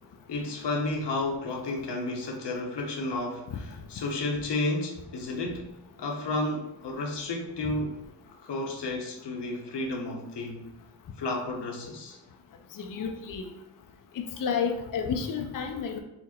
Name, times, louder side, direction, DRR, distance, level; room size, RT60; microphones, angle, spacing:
voice 1, 0.3-5.7 6.0-7.9 8.4-10.7 11.2-12.2, left 2 dB, 70° left, 2 dB, 1.0 m, -32 dB
voice 2, 12.8-13.5 14.4-16.0, left 6 dB, 50° left, 4 dB, 0.6 m, -30 dB
4.0 x 2.1 x 4.2 m, 0.87 s
supercardioid pair, 45°, 44 cm